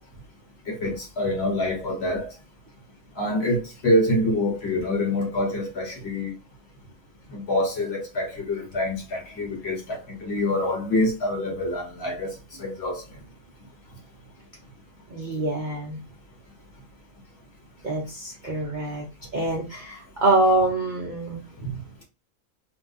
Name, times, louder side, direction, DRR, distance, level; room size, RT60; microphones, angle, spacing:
voice 1, 0.7-2.3 3.2-6.3 7.3-12.3 12.6-13.0 21.6-21.7, left 1 dB, 50° left, 1.2 m, -26 dB
voice 2, 15.1-16.0 17.8-21.4, right 2 dB, 50° right, 0.5 m, -25 dB
2.6 x 2.2 x 3.8 m
omnidirectional pair, 1.5 m